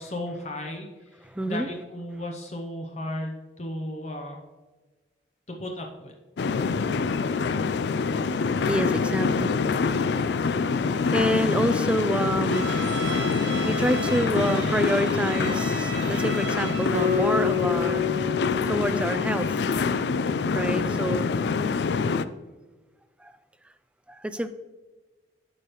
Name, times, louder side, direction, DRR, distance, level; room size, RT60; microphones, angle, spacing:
voice 1, 0.0-1.2 1.5-4.4 5.5-6.1 20.7-21.0, left 1 dB, 35° left, 2 dB, 0.7 m, -35 dB
voice 2, 1.2-1.7 8.6-13.1 13.6-18.0 18.7-19.6 20.5-21.3 23.2-23.3 24.1-24.5, right 1 dB, 5° right, 11 dB, 0.3 m, -28 dB
sound 1, 6.4-22.2, left 4 dB, 70° left, 0.3 m, -25 dB
Bowed string instrument, 12.5-17.1, right 5 dB, 80° right, 0.7 m, -37 dB
Acoustic guitar, 16.9-20.2, left 9 dB, 40° right, 0.7 m, -29 dB
11.5 x 4.9 x 3.0 m, 1.3 s
head